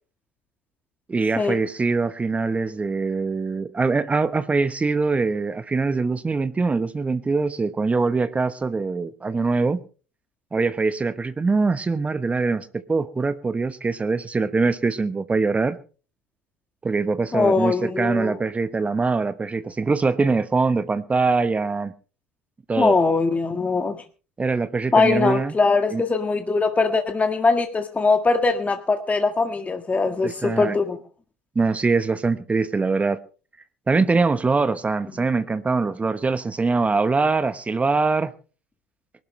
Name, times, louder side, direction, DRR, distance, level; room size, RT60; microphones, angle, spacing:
voice 1, 1.1-9.8 10.5-15.8 16.8-21.9 22.7-23.0 24.4-25.5 25.9-26.0 30.2-30.8 31.5-33.2 33.9-38.3, right 4 dB, 20° right, 1.1 m, -23 dB
voice 2, 17.3-18.4 22.8-24.0 24.9-31.0, left 4 dB, 20° left, 1.8 m, -21 dB
24.0 x 12.0 x 3.3 m
figure-of-eight pair, 70°, 7 cm